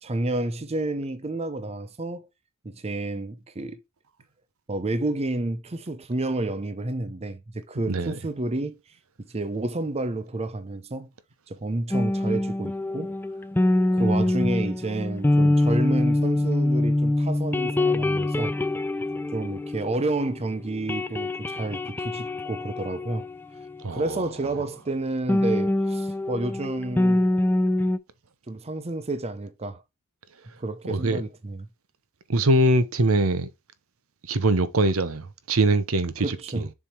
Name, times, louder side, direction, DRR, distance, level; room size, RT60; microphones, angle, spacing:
voice 1, 0.0-2.3 2.6-3.8 4.7-8.8 9.3-11.1 11.5-13.2 13.9-18.5 19.3-23.3 23.9-27.2 28.5-29.8 30.6-31.7 36.2-36.7, right 2 dB, 30° right, 0.7 m, -30 dB
voice 2, 7.9-8.2 14.1-14.3 23.8-24.2 30.9-31.2 32.3-33.5 34.3-36.7, right 2 dB, 75° right, 0.9 m, -23 dB
sound 1, 11.9-20.4 20.7-24.1 25.3-28.0, left 1 dB, 10° left, 0.4 m, -24 dB
7.1 x 3.6 x 4.5 m
head